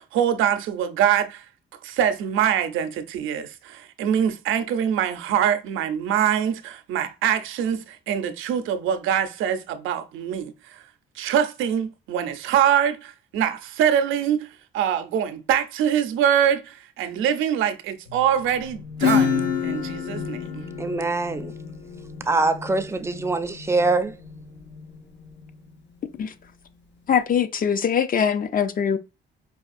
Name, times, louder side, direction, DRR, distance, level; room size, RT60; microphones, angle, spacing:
voice 1, 0.0-1.4 1.8-10.8 11.2-14.5 14.7-20.6, right 9 dB, 85° right, 0.6 m, -24 dB
sound 1, 18.1-25.8, left 3 dB, 85° left, 2.0 m, -41 dB
Acoustic guitar / Strum, 19.0-24.4, left 8 dB, 65° left, 0.9 m, -27 dB
voice 2, 20.8-21.5 22.3-24.1, right 3 dB, 15° right, 0.5 m, -23 dB
voice 3, 27.1-29.0, left 7 dB, 45° left, 0.5 m, -22 dB
4.8 x 2.4 x 2.5 m
cardioid pair, 90°, 20 cm